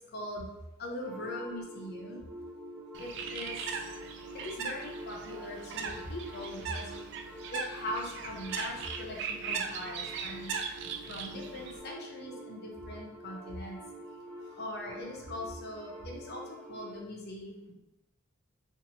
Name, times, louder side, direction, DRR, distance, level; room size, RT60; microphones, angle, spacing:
voice 1, 0.1-0.5 0.8-2.2 3.0-3.6 4.3-7.2 7.5-10.6 11.1-13.8 14.6-17.7, left 1 dB, 50° left, -1 dB, 0.6 m, -41 dB
sound 1, 1.0-17.0, right 1 dB, 90° right, 0.8 m, -47 dB
Bird, 2.9-11.8, right 5 dB, 55° right, 0.3 m, -39 dB
2.7 x 2.5 x 2.8 m, 0.97 s
head